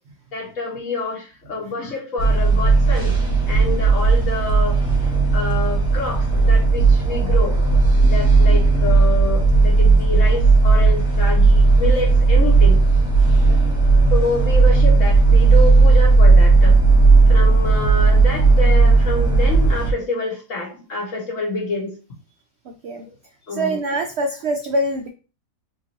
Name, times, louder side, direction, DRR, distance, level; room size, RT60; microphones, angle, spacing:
voice 1, 0.3-3.2 3.5-4.8 5.3-7.5 8.0-12.8 14.1-16.7 17.3-21.9 22.9-23.0 23.5-23.8, left 2 dB, 50° left, -2 dB, 1.7 m, -27 dB
sound 1, 2.2-19.9, right 3 dB, 5° right, 1.4 m, -14 dB
voice 2, 13.3-13.7 22.6-23.0 23.5-25.1, right 1 dB, 80° right, 4 dB, 0.5 m, -25 dB
4.8 x 3.1 x 2.8 m, 0.34 s
omnidirectional pair, 1.8 m